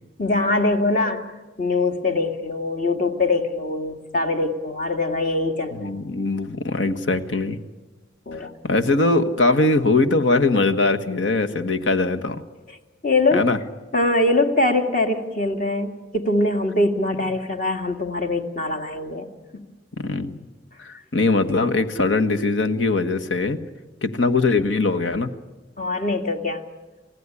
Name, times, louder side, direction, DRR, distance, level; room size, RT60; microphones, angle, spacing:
voice 1, 0.2-1.3 1.6-5.9 8.3-8.5 13.0-13.4 13.9-19.3 19.5-19.6 20.9-21.0 25.8-26.6, left 2 dB, 45° left, 5 dB, 2.0 m, -23 dB
voice 2, 5.7-7.6 8.6-12.4 13.3-13.6 20.0-20.4 20.8-23.6 24.0-25.3, left 3 dB, 90° left, 6 dB, 1.5 m, -21 dB
29.0 x 15.5 x 9.8 m, 1.2 s
head